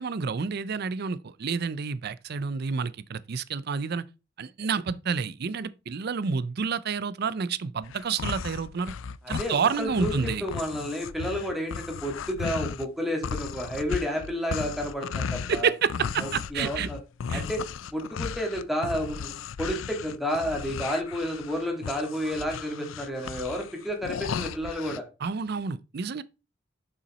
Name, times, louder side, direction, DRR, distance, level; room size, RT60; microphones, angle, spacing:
voice 1, 0.0-4.0 4.4-8.9 9.3-10.4 15.5-16.9 17.3-17.4 25.2-26.2, right 5 dB, 55° right, 0.5 m, -29 dB
sound 1, 7.8-12.9 13.2-25.0, left 6 dB, 90° left, 0.4 m, -35 dB
voice 2, 9.2-10.1 10.4-15.7 16.2-17.0 17.3-17.6 17.9-25.0, equal, ahead, 2.1 m, -31 dB
6.9 x 5.7 x 4.2 m
head